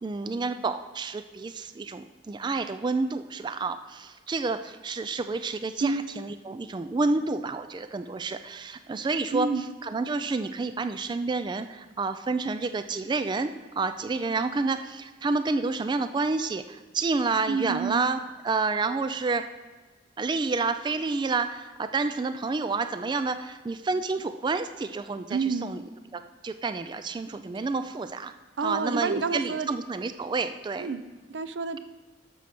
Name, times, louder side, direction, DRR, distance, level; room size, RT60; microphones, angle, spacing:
voice 1, 0.0-9.5 9.8-13.5 13.8-18.2 18.4-19.5 20.2-25.8 26.1-28.3 28.6-30.9, right 3 dB, 25° right, 10 dB, 0.3 m, -29 dB
voice 2, 9.3-9.7 17.5-18.0 25.3-25.7 27.5-27.7 28.6-29.7 30.8-31.0 31.3-31.8, right 4 dB, 85° right, 12 dB, 0.5 m, -29 dB
8.5 x 6.3 x 5.9 m, 1.3 s
head